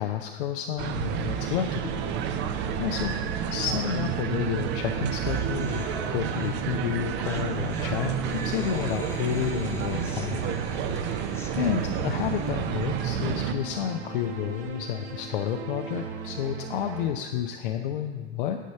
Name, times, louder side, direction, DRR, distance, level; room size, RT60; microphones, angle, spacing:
voice 1, 0.0-2.0 2.3-3.1 3.5-10.5 11.0-18.6, left 10 dB, 55° left, 5 dB, 0.6 m, -31 dB
sound 1, 0.8-13.5, right 8 dB, 35° right, 0.7 m, -30 dB
sound 2, 1.1-17.1, right 5 dB, 60° right, 1.1 m, -38 dB
sound 3, 4.6-4.7 4.9-12.5, left 2 dB, 5° left, 1.1 m, -43 dB
9.9 x 5.2 x 6.7 m, 1.4 s
figure-of-eight pair, 85°, 32 cm